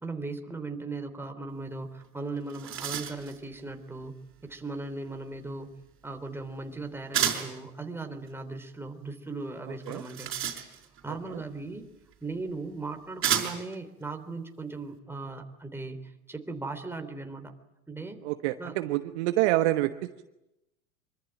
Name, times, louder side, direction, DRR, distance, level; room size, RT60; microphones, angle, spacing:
voice 1, 0.0-4.2 4.4-5.7 6.0-10.3 11.0-11.9 12.2-17.5 17.9-18.2 18.6-18.8, right 3 dB, 5° right, 5 dB, 3.4 m, -38 dB
sound 1, 2.0-2.1 2.4-3.4 7.1-7.6 9.8-11.0 12.1-12.2 13.2-13.8, right 9 dB, 30° right, 5.1 m, -30 dB
voice 2, 18.2-19.9, right 17 dB, 50° right, 10 dB, 1.3 m, -26 dB
25.5 x 24.5 x 9.1 m, 0.91 s
figure-of-eight pair, 85°, 41 cm